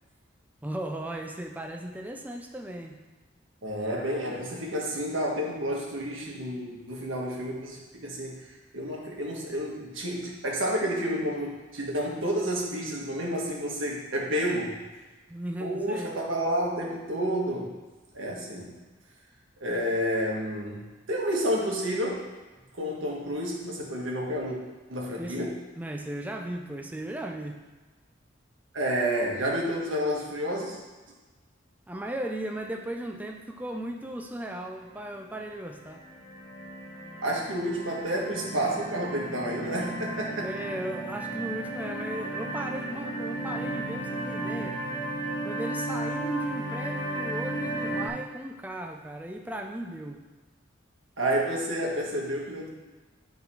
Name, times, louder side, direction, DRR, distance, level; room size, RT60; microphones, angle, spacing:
voice 1, 0.6-3.0 15.3-16.1 22.6-22.8 25.2-27.6 31.9-36.0 40.4-44.8 45.4-50.2, right 1 dB, 10° right, 3 dB, 0.4 m, -36 dB
voice 2, 3.6-14.7 15.6-17.7 18.1-18.7 19.6-22.2 22.8-24.6 24.9-25.6 28.7-30.8 37.2-40.5 51.2-52.7, equal, 90° right, -2 dB, 1.5 m, -30 dB
sound 1, 34.9-35.4 35.8-48.1, right 1 dB, 20° left, 0.9 m, -34 dB
8.8 x 3.8 x 4.3 m, 1.2 s
head